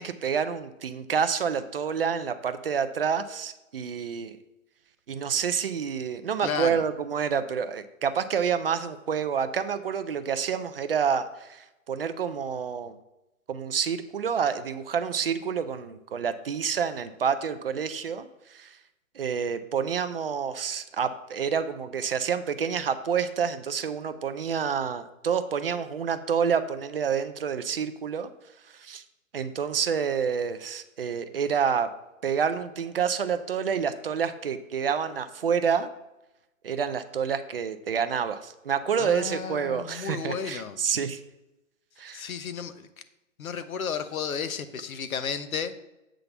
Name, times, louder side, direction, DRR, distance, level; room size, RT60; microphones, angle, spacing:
voice 1, 0.0-4.4 5.1-13.0 13.5-18.8 19.2-28.3 28.7-29.0 29.3-31.9 32.2-35.9 36.6-41.2 42.0-42.3, right 7 dB, 45° right, 10 dB, 0.5 m, -28 dB
voice 2, 6.4-6.8 39.0-40.8 42.1-42.9 43.4-45.7, left 6 dB, 80° left, 11 dB, 1.0 m, -33 dB
8.0 x 3.8 x 6.8 m, 0.94 s
hypercardioid pair, 160°, 41 cm